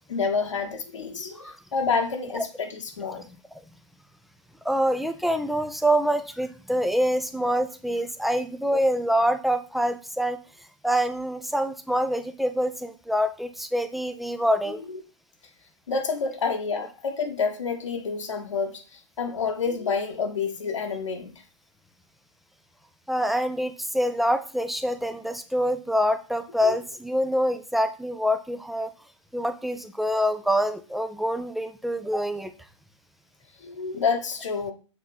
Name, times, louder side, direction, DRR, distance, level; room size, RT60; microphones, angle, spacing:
voice 1, 0.1-3.3 14.9-15.0 15.9-21.3 26.6-26.8 33.6-34.7, left 5 dB, 70° left, 4 dB, 1.3 m, -28 dB
voice 2, 4.6-10.4 10.8-14.8 23.1-28.9 29.3-32.5, equal, ahead, 9 dB, 0.5 m, -25 dB
7.2 x 2.9 x 5.4 m, 0.35 s
figure-of-eight pair, 115°, 16 cm